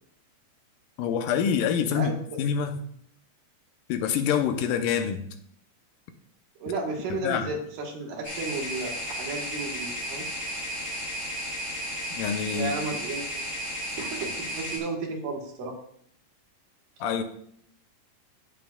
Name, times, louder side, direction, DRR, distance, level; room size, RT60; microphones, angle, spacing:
voice 1, 1.0-2.1 2.4-2.8 3.9-5.3 7.1-7.6 12.2-12.8 17.0-17.2, left 8 dB, 90° left, 2.4 m, -26 dB
voice 2, 6.6-10.2 12.5-13.4 14.0-15.8, right 3 dB, 80° right, 3.2 m, -33 dB
sound 1, 8.2-14.8, equal, 15° left, 3.9 m, -34 dB
16.0 x 7.0 x 2.3 m
omnidirectional pair, 3.8 m